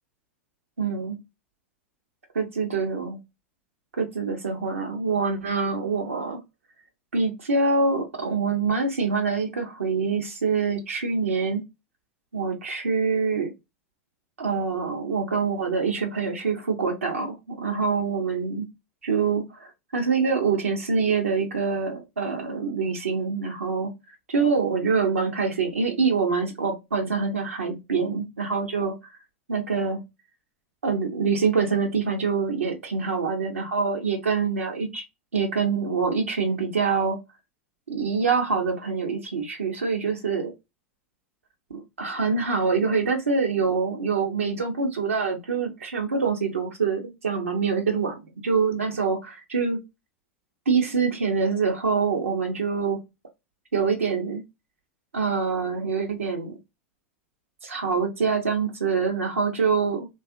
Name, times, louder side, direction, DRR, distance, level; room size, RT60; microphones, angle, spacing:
voice 1, 0.8-1.2 2.4-3.2 4.0-6.4 7.1-11.6 12.3-13.5 14.4-18.7 19.0-23.9 24.3-28.9 29.5-30.0 30.8-35.0 35.3-37.2 37.9-40.5 41.7-49.8 50.7-53.0 53.7-54.4 55.1-56.5 57.6-60.1, right 5 dB, 85° right, 0.6 m, -25 dB
2.6 x 2.3 x 2.4 m
hypercardioid pair, 95°, 7 cm